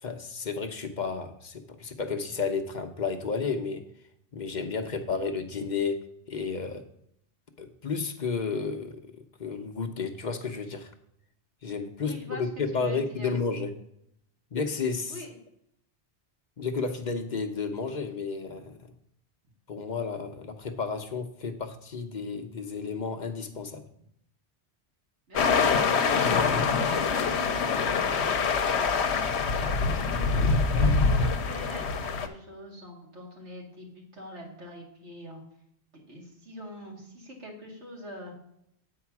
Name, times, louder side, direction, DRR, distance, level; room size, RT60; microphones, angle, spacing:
voice 1, 0.0-3.8 4.3-6.0 6.3-6.8 7.6-10.9 11.6-13.7 14.5-15.2 16.6-18.8 19.7-23.8, left 5 dB, 45° left, 7 dB, 0.8 m, -32 dB
voice 2, 12.0-13.3 15.1-15.3 25.3-29.1 29.6-35.4 36.1-38.4, equal, 85° right, -1 dB, 2.4 m, -44 dB
sound 1, 25.4-32.3, left 5 dB, 75° left, 1.0 m, -25 dB
8.5 x 4.7 x 5.8 m, 0.75 s
omnidirectional pair, 1.1 m